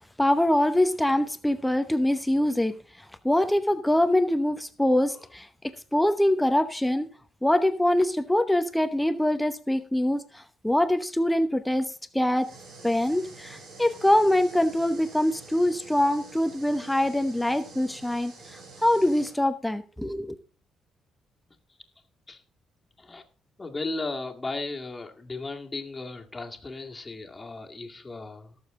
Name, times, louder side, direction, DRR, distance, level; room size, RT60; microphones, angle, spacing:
voice 1, 0.2-2.8 3.2-7.1 7.4-12.5 12.8-20.4, left 1 dB, 5° left, 10 dB, 0.9 m, -24 dB
sound 1, 12.4-19.4, right 3 dB, 65° right, 3.4 m, -47 dB
voice 2, 23.6-28.6, left 3 dB, 20° left, 1 dB, 2.1 m, -36 dB
18.0 x 7.0 x 3.7 m, 0.36 s
cardioid pair, 90°, 0 cm